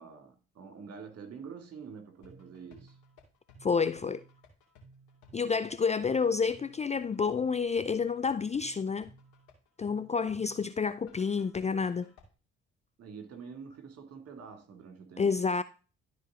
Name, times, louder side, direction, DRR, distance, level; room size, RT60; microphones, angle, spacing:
voice 1, 0.0-3.0 6.0-6.3 13.0-15.4, right 6 dB, 50° right, 2.3 m, -47 dB
sound 1, 2.2-12.2, right 1 dB, 70° left, 2.5 m, -57 dB
voice 2, 3.6-4.2 5.3-9.1 9.8-12.1 15.2-15.6, left 5 dB, 20° left, 0.5 m, -29 dB
12.5 x 4.4 x 3.7 m
hypercardioid pair, 45°, 32 cm